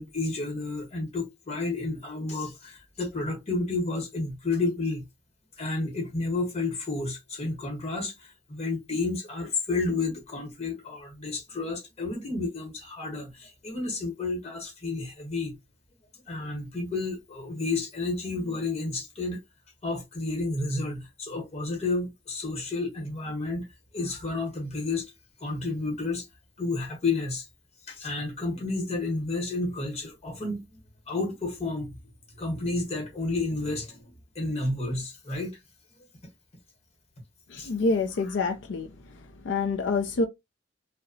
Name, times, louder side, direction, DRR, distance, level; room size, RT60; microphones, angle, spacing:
voice 1, 0.0-5.0 5.6-15.6 16.3-19.4 19.8-23.7 23.9-25.1 25.4-26.3 26.6-27.5 27.9-30.8 31.1-32.0 32.3-35.6 37.6-37.7, left 3 dB, 35° left, 1.0 m, -31 dB
voice 2, 37.5-38.9 39.4-40.3, left 3 dB, 85° left, 0.4 m, -26 dB
2.7 x 2.1 x 2.6 m
head